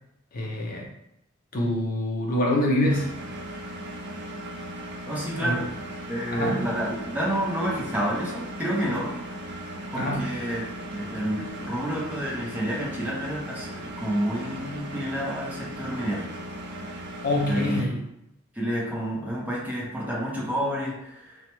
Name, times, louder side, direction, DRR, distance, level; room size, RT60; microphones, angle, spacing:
voice 1, 0.3-0.9 1.5-3.2 5.4-5.6 6.3-6.6 9.9-10.3 17.2-18.0, left 1 dB, 45° left, -2 dB, 0.5 m, -25 dB
Engine, 2.9-17.8, right 1 dB, 55° right, 0.5 m, -37 dB
voice 2, 5.1-5.7 6.1-9.2 9.9-10.6 10.9-16.3 17.4-17.9 18.5-21.4, equal, 10° right, -5 dB, 0.6 m, -29 dB
3.0 x 2.1 x 2.9 m, 0.85 s
head